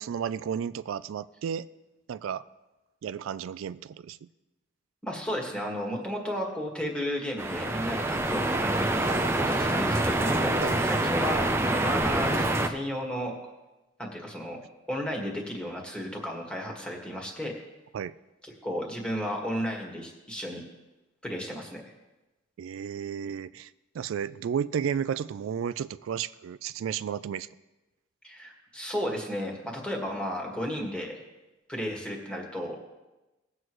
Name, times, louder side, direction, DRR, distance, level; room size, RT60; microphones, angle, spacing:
voice 1, 0.0-1.7 2.1-2.4 3.0-4.3 10.6-10.8 17.9-18.1 22.6-23.7 23.9-27.5, right 8 dB, 90° right, 15 dB, 0.3 m, -33 dB
voice 2, 5.0-13.3 14.0-14.6 14.9-17.5 18.4-20.6 21.2-21.8 28.2-31.2 31.7-32.7, equal, 5° left, -1 dB, 1.7 m, -33 dB
sound 1, 7.4-12.7, right 1 dB, 15° right, 0.5 m, -26 dB
18.5 x 7.8 x 3.1 m, 1.1 s
head